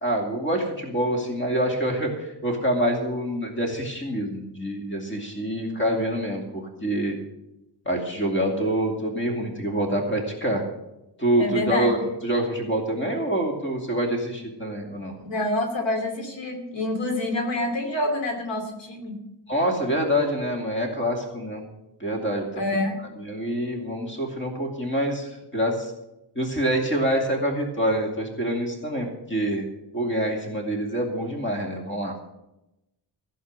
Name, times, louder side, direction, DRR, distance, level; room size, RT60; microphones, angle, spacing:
voice 1, 0.0-7.2 7.9-10.6 11.2-15.1 19.5-21.6 22.0-22.4 23.2-25.9 26.4-29.7 29.9-32.2, equal, 25° left, 1 dB, 2.6 m, -26 dB
voice 2, 11.4-11.9 15.2-19.2 22.5-23.0, left 1 dB, 80° left, 4 dB, 2.8 m, -27 dB
15.5 x 7.2 x 7.8 m, 0.91 s
wide cardioid pair, 170°, 44 cm